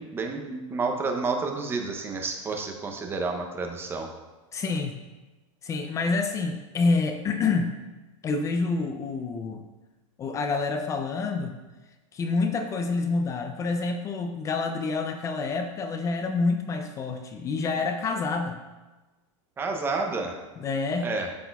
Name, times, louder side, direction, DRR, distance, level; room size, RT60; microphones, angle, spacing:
voice 1, 0.0-4.1 19.6-20.4 21.0-21.3, right 3 dB, 15° right, 3 dB, 0.6 m, -30 dB
voice 2, 4.5-4.9 5.6-7.7 8.2-9.6 10.2-11.5 12.1-18.6 20.6-21.1, left 4 dB, 20° left, 6 dB, 0.3 m, -27 dB
11.5 x 4.2 x 2.3 m, 1.2 s
supercardioid pair, 150°, 17 cm